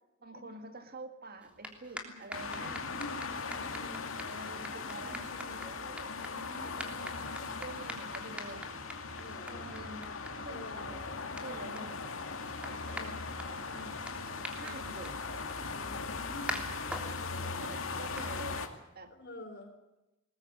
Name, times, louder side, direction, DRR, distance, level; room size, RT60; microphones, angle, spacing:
voice 1, 0.2-2.8 3.9-6.1 7.6-8.8 9.5-13.9 14.6-15.2 17.6-18.6 18.9-19.2, right 2 dB, 50° right, 8 dB, 1.8 m, -48 dB
sound 1, 1.4-19.1, equal, 5° right, 3.3 m, -47 dB
sound 2, 2.3-18.7, left 4 dB, 80° left, 2.3 m, -39 dB
voice 2, 2.6-4.1 5.0-5.7 6.0-7.6 9.2-9.7 10.5-10.9 11.6-11.8 12.9-13.3 13.7-14.0 14.6-14.8 15.7-18.2 19.1-19.8, left 1 dB, 55° left, 5 dB, 4.5 m, -49 dB
sound 3, 7.0-16.0, equal, 65° right, 2.6 m, -58 dB
21.0 x 20.0 x 8.5 m, 0.95 s
head